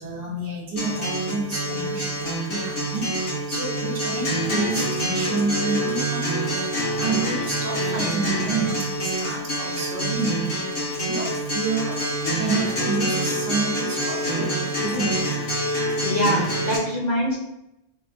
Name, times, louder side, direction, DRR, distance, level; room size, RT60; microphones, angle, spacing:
voice 1, 0.0-10.7 11.0-12.0 12.4-15.2, right 3 dB, 60° right, -2 dB, 0.9 m, -29 dB
Acoustic guitar, 0.8-16.8, right 1 dB, 85° left, 1.4 m, -26 dB
voice 2, 16.0-17.4, equal, 45° left, -3 dB, 0.8 m, -24 dB
3.7 x 2.3 x 2.5 m, 0.86 s
omnidirectional pair, 1.1 m